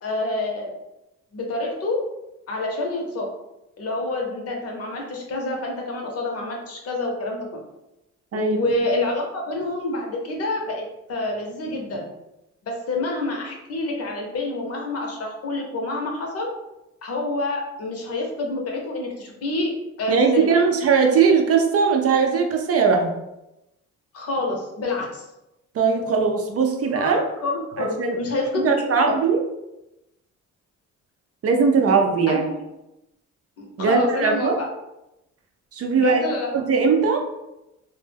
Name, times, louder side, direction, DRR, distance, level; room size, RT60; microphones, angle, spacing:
voice 1, 0.0-0.7 1.3-2.0 2.5-3.3 3.8-7.6 8.3-10.8 11.1-12.1 12.6-16.5 17.0-19.7 20.0-20.6 24.1-25.3 26.9-28.7 29.1-29.2 32.3-32.6 33.6-34.7 36.0-36.5, left 2 dB, 50° left, 1 dB, 0.7 m, -27 dB
voice 2, 20.1-23.1 25.7-27.2 27.8-28.2 28.5-29.4 31.4-32.4 33.8-34.6 35.7-36.2 36.5-37.2, right 5 dB, 50° right, 3 dB, 0.5 m, -19 dB
2.1 x 2.1 x 3.3 m, 0.92 s
cardioid pair, 90°, 30 cm